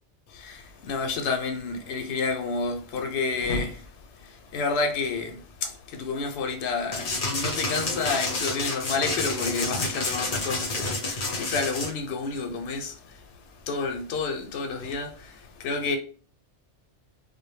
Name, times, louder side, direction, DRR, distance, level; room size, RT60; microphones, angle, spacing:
voice 1, 0.3-3.9 4.2-13.2 13.7-16.0, left 4 dB, 70° left, 0.8 m, -30 dB
sound 1, 6.9-11.9, left 2 dB, 45° left, 0.5 m, -29 dB
2.2 x 2.1 x 3.1 m
omnidirectional pair, 1.2 m